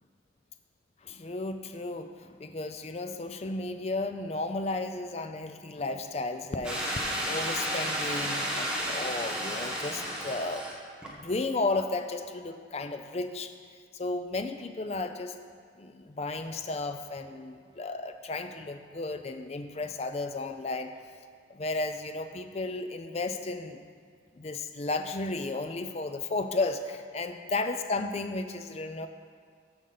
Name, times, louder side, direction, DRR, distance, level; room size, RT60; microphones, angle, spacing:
voice 1, 1.0-10.7 11.1-13.5 13.9-15.4 15.8-20.9 21.5-23.8 24.4-29.1, left 2 dB, 35° left, 8 dB, 0.4 m, -33 dB
sound 1, 6.6-10.7 11.0-11.1, equal, 5° right, 1.2 m, -32 dB
14.0 x 5.3 x 4.0 m, 2.1 s
head